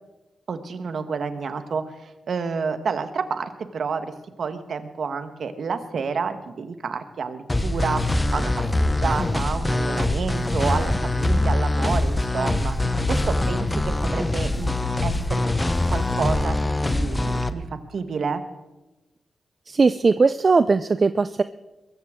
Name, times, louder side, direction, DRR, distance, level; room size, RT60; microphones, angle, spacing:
voice 1, 0.5-4.1 4.4-14.7 15.0-15.4 15.9-18.4, right 5 dB, 65° right, 9 dB, 1.3 m, -29 dB
sound 1, 7.5-17.5, left 2 dB, 20° left, 0.8 m, -23 dB
voice 2, 19.7-21.4, right 4 dB, 40° right, 13 dB, 0.4 m, -19 dB
22.0 x 14.5 x 3.7 m, 1.0 s
cardioid pair, 85°, 0 cm